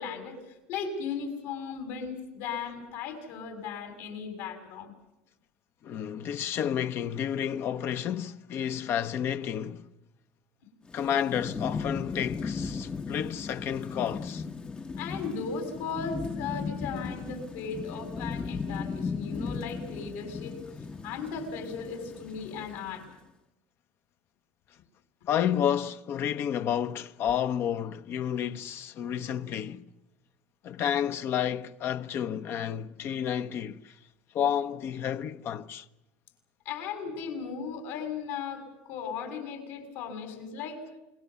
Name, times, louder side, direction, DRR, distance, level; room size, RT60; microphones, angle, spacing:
voice 1, 0.0-4.9 15.0-20.6 21.0-23.1 36.6-40.8, left 5 dB, 75° left, 6.9 m, -36 dB
voice 2, 5.8-9.9 10.9-14.4 25.3-29.8 30.6-33.9 34.3-35.8, left 9 dB, 45° left, 1.0 m, -30 dB
Thunderstorm / Rain, 10.9-23.1, left 5 dB, 20° left, 0.9 m, -37 dB
28.5 x 21.5 x 7.1 m
supercardioid pair, 120°, 5 cm